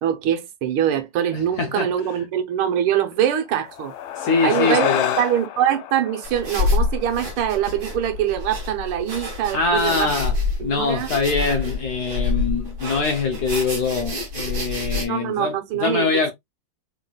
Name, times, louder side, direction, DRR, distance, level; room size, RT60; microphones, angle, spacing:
voice 1, 0.0-3.9 4.4-4.9 5.2-10.1 10.6-11.1 15.1-16.3, right 10 dB, 90° right, 1.7 m, -23 dB
voice 2, 1.3-1.9 4.2-5.2 9.5-16.3, left 4 dB, 65° left, 1.1 m, -23 dB
sound 1, 3.5-8.3, left 11 dB, 80° left, 1.4 m, -29 dB
sound 2, 6.2-15.1, left 3 dB, 50° right, 1.9 m, -27 dB
3.9 x 3.9 x 2.2 m
omnidirectional pair, 2.2 m